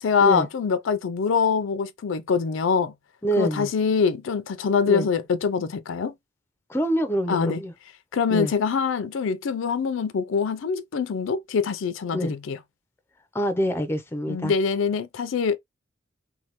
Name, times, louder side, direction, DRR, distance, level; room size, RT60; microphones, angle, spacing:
voice 1, 0.0-2.9 3.4-6.2 7.3-7.6 8.1-12.6 14.3-15.6, left 5 dB, 75° left, 0.4 m, -24 dB
voice 2, 3.2-3.7 4.9-5.1 6.7-7.7 8.3-8.5 12.1-12.3 13.3-14.5, equal, 10° left, 0.5 m, -25 dB
3.2 x 2.2 x 2.9 m
head